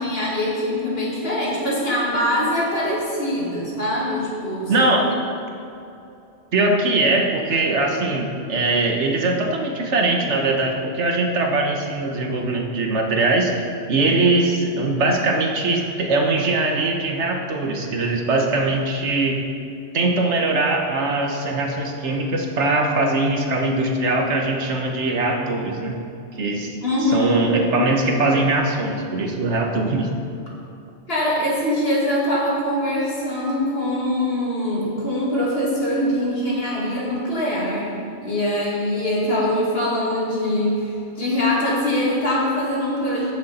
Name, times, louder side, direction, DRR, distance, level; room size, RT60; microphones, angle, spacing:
voice 1, 0.0-4.9 26.8-27.4 31.1-43.3, left 1 dB, 55° left, -5 dB, 2.5 m, -23 dB
voice 2, 4.7-5.1 6.5-13.5 13.9-19.4 19.9-26.0 26.4-30.1, right 2 dB, 70° right, 2 dB, 1.4 m, -21 dB
14.5 x 6.8 x 4.2 m, 2.7 s
omnidirectional pair, 1.2 m